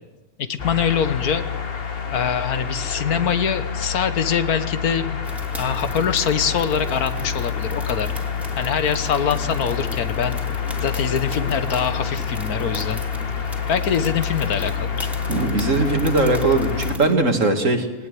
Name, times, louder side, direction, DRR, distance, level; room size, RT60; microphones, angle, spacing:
voice 1, 0.4-1.4 2.1-5.2 5.5-8.1 8.5-10.4 10.8-13.0 13.7-15.1, left 7 dB, 85° left, 11 dB, 1.7 m, -23 dB
sound 1, 0.6-17.0, left 7 dB, 40° left, 1.5 m, -28 dB
sound 2, 5.2-17.1, equal, ahead, 2.7 m, -37 dB
voice 2, 15.3-18.1, right 2 dB, 60° right, 4 dB, 2.7 m, -20 dB
21.0 x 18.0 x 9.4 m, 1.1 s
omnidirectional pair, 1.5 m